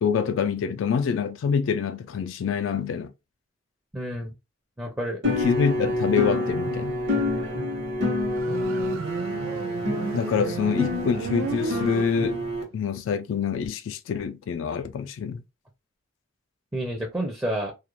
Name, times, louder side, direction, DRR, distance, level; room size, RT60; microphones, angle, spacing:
voice 1, 0.0-3.1 5.3-7.0 10.1-12.4 12.7-15.4, left 6 dB, 70° left, 0.3 m, -26 dB
voice 2, 3.9-4.3 4.8-5.2 10.1-10.5 16.7-17.7, right 1 dB, 10° right, 0.5 m, -30 dB
sound 1, 5.2-12.6, left 1 dB, 55° right, 1.0 m, -28 dB
Motorcycle, 8.3-12.7, right 5 dB, 75° right, 0.4 m, -34 dB
2.4 x 2.1 x 2.9 m
head